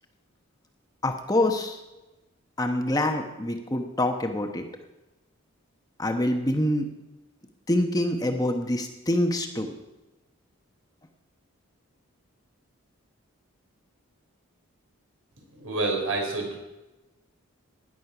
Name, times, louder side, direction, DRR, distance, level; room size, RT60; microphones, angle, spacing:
voice 1, 1.0-1.8 2.6-4.6 6.0-6.9 7.7-9.7, left 1 dB, 15° left, 4 dB, 1.1 m, -25 dB
voice 2, 15.4-16.6, right 2 dB, 70° right, 1 dB, 4.5 m, -29 dB
16.0 x 10.5 x 6.0 m, 1.1 s
head